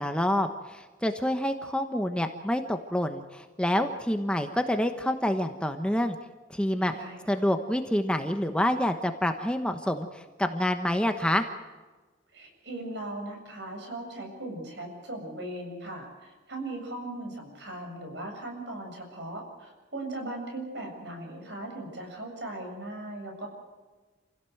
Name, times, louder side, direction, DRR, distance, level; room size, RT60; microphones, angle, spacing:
voice 1, 0.0-6.2 6.5-6.9 7.3-11.5, left 1 dB, 5° left, 6 dB, 1.1 m, -27 dB
voice 2, 6.8-7.4 12.3-23.5, right 1 dB, 65° right, 3 dB, 7.3 m, -38 dB
28.0 x 16.5 x 7.9 m, 1.3 s
head